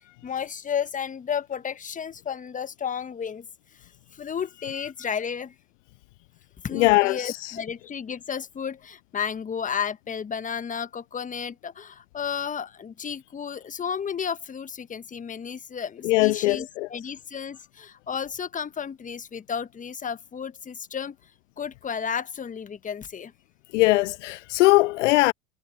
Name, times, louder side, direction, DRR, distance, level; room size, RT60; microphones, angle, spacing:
voice 1, 0.2-3.5 4.1-5.5 6.6-21.1 21.6-23.3, left 7 dB, 20° left, 1.4 m, -32 dB
voice 2, 6.7-7.6 16.0-16.9 23.7-25.3, left 20 dB, 60° left, 0.7 m, -21 dB
hypercardioid pair, 85°, 41 cm